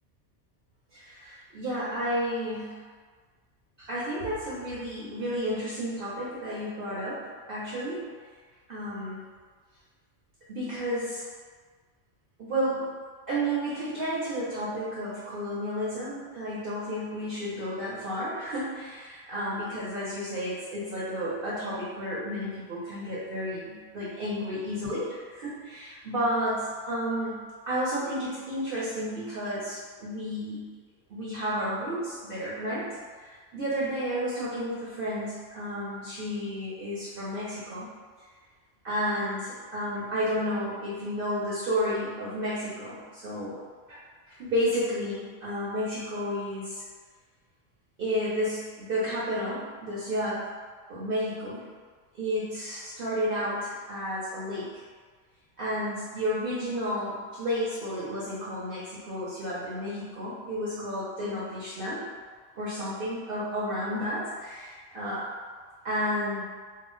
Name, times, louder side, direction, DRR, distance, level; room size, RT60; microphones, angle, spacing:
voice 1, 0.9-2.9 3.8-8.1 8.7-9.2 10.5-11.3 12.4-13.0 13.3-30.7 31.1-37.9 38.8-43.6 43.9-44.0 44.3-46.8 48.0-50.6 50.9-51.6 52.2-54.8 55.6-62.1 62.5-65.3 65.8-66.4, equal, 60° right, -9 dB, 0.7 m, -32 dB
2.3 x 2.0 x 3.6 m, 1.5 s
omnidirectional pair, 1.2 m